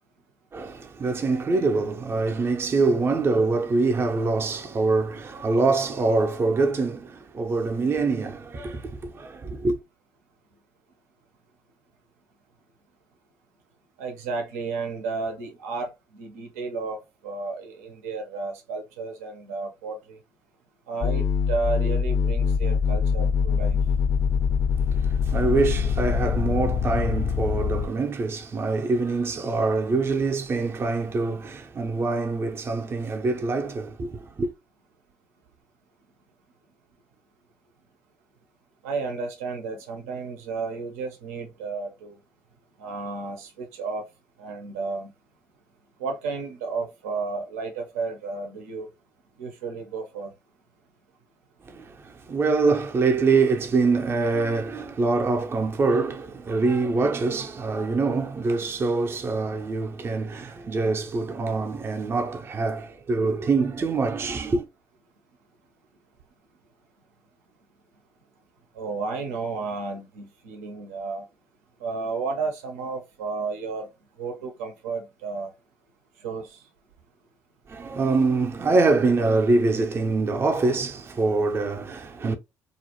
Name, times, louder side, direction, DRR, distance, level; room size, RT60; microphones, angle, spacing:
voice 1, 0.5-9.8 25.2-34.5 51.7-64.6 77.7-82.4, right 3 dB, 30° right, 0.5 m, -24 dB
voice 2, 14.0-20.2 20.9-23.8 38.8-42.2 42.8-44.0 44.4-45.1 46.0-48.9 49.4-50.3 68.7-71.2 71.8-73.9 74.2-75.5 76.2-76.6, right 4 dB, 85° right, 0.5 m, -32 dB
sound 1, 21.0-27.9, left 6 dB, 50° left, 0.5 m, -24 dB
2.3 x 2.1 x 2.9 m
hypercardioid pair, 55°, 8 cm